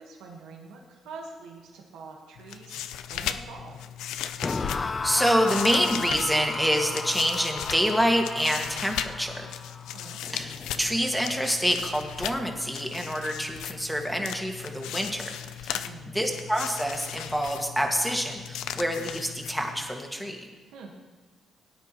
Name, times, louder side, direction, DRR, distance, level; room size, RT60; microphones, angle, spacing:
voice 1, 0.0-2.8 3.1-3.8 9.9-10.2 15.7-16.2 20.6-20.9, right 4 dB, 90° right, 0 dB, 1.4 m, -45 dB
sound 1, 2.4-20.0, left 10 dB, 90° left, 0.4 m, -37 dB
sound 2, 4.4-11.5, left 4 dB, 30° left, 0.4 m, -35 dB
voice 2, 4.5-9.5 10.3-15.3 15.6-20.4, equal, ahead, 2 dB, 1.7 m, -27 dB
17.5 x 9.5 x 3.0 m, 1.3 s
cardioid pair, 90°, 0 cm